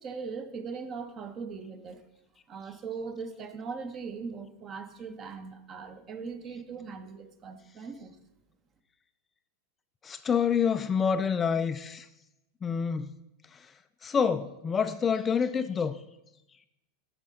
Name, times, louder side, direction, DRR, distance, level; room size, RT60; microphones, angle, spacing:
voice 1, 0.0-2.0 2.5-8.2, right 5 dB, 35° right, 0.9 m, -40 dB
voice 2, 10.0-12.1 12.6-13.1 13.5-13.7 14.0-16.0, left 6 dB, 20° left, 0.3 m, -27 dB
9.4 x 6.5 x 3.7 m
supercardioid pair, 125°, 0 cm